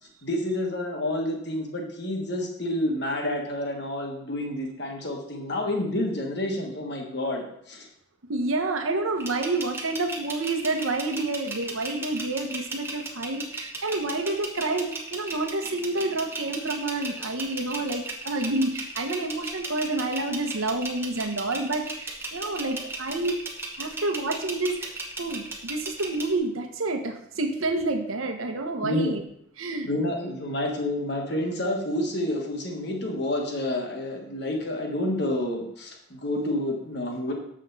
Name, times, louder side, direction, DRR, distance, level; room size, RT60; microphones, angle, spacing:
voice 1, 0.2-7.9 28.8-29.1 29.8-37.3, left 1 dB, 55° left, 2 dB, 1.4 m, -29 dB
voice 2, 8.3-23.4 23.8-24.9 25.2-29.2 29.6-29.9, right 2 dB, 85° right, 5 dB, 1.0 m, -29 dB
sound 1, 9.2-26.3, right 3 dB, 10° right, 0.9 m, -36 dB
7.5 x 6.4 x 4.0 m, 0.73 s
head